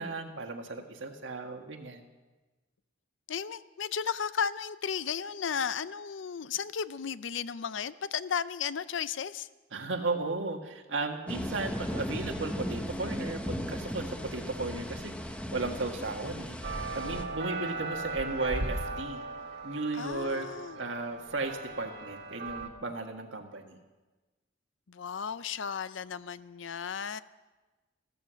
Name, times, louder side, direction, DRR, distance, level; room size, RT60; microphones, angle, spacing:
voice 1, 0.0-2.0 9.7-19.2 19.6-20.5 20.8-23.8, right 3 dB, 75° right, 4 dB, 1.7 m, -35 dB
voice 2, 3.3-9.5 19.9-20.8 24.9-27.2, left 7 dB, 80° left, 16 dB, 0.5 m, -34 dB
sound 1, 11.3-17.2, equal, 5° left, 0.9 m, -37 dB
sound 2, 16.6-22.7, right 3 dB, 60° right, 1.3 m, -37 dB
14.5 x 14.0 x 6.3 m, 1.2 s
head